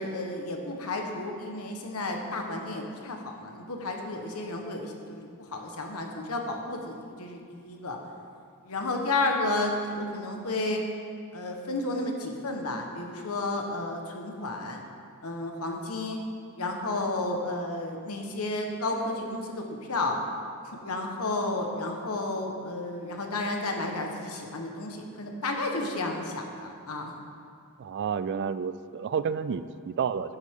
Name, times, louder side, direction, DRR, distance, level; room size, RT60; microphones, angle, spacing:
voice 1, 0.0-8.0 8.6-10.8 11.3-14.8 15.2-16.2 16.6-20.2 20.6-27.1, left 2 dB, 75° left, 2 dB, 1.2 m, -32 dB
voice 2, 27.8-30.4, right 6 dB, 50° right, 14 dB, 0.3 m, -30 dB
11.5 x 9.4 x 3.7 m, 2.3 s
head